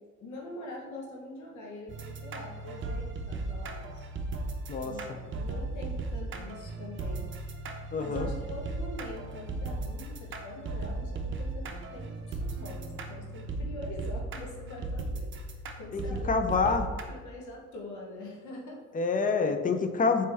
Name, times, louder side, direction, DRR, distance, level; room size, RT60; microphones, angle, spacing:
voice 1, 0.2-4.1 4.8-7.3 8.0-15.3 15.8-16.7 17.1-18.8, left 1 dB, 75° left, -2 dB, 1.0 m, -44 dB
sound 1, 1.9-17.0, right 2 dB, 40° right, 0.6 m, -36 dB
voice 2, 7.9-8.3 15.9-16.0 16.3-16.9 18.9-20.3, left 4 dB, 30° left, 7 dB, 0.4 m, -27 dB
4.3 x 3.2 x 3.4 m, 1.5 s
cardioid pair, 90°, 30 cm